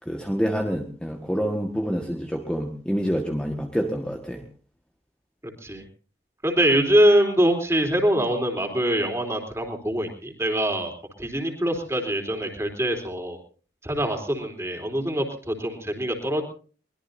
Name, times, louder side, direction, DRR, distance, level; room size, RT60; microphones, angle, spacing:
voice 1, 0.0-4.4, equal, 5° left, 2 dB, 1.5 m, -27 dB
voice 2, 6.4-10.9 11.2-13.4 13.8-16.4, right 1 dB, 15° right, 4 dB, 3.6 m, -23 dB
23.5 x 21.0 x 2.7 m, 0.39 s
head